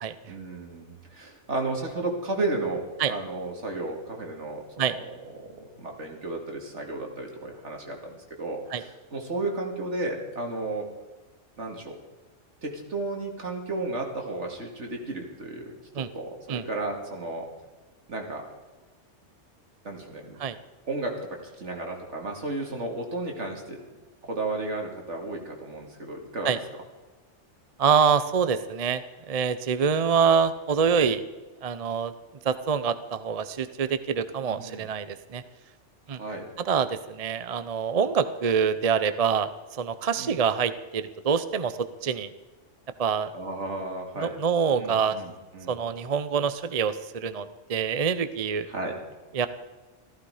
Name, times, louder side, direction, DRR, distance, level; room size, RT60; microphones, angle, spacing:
voice 1, 0.3-10.9 11.6-12.0 12.6-17.5 18.1-18.5 19.8-20.4 20.8-23.8 24.2-26.6 34.4-34.9 36.1-36.4 40.2-40.4 43.3-44.3 44.7-45.8 48.7-49.0, right 2 dB, 75° right, 2 dB, 2.7 m, -33 dB
voice 2, 27.8-29.0 29.3-31.2 31.6-32.1 32.4-35.4 36.1-36.2 36.6-42.3 43.0-43.3 44.2-45.2 45.7-48.7 49.3-49.5, right 6 dB, 40° right, 12 dB, 0.6 m, -25 dB
15.0 x 14.5 x 4.9 m, 1.2 s
omnidirectional pair, 1.2 m